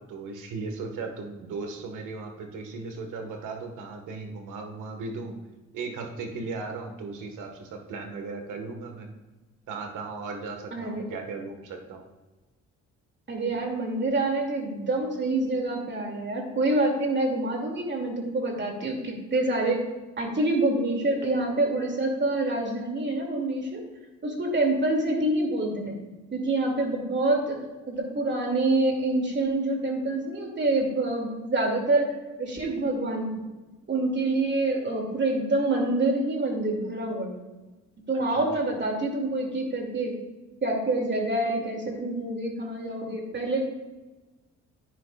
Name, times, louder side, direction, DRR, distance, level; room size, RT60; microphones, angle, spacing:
voice 1, 0.0-5.4 5.7-9.1 9.7-12.0 38.4-38.5, right 4 dB, 90° right, 4 dB, 1.6 m, -37 dB
voice 2, 10.7-11.0 13.3-19.8 20.2-23.8 24.2-25.9 26.3-27.6 27.9-32.1 32.4-33.3 33.9-37.3 38.1-40.1 40.6-43.6, right 2 dB, 40° right, 1 dB, 2.5 m, -26 dB
11.0 x 9.6 x 2.4 m, 1.2 s
cardioid pair, 90°, 30 cm